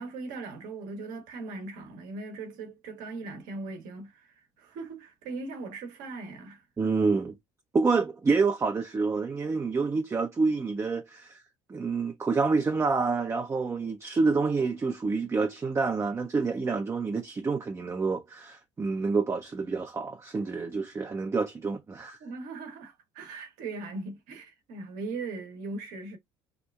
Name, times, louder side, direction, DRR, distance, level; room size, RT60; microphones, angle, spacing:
voice 1, 0.0-6.9 22.2-26.2, right 3 dB, 70° right, 0.9 m, -39 dB
voice 2, 6.8-7.4 7.7-11.4 11.7-22.2, right 4 dB, 20° right, 0.4 m, -28 dB
2.7 x 2.2 x 2.3 m
hypercardioid pair, 65°, 14 cm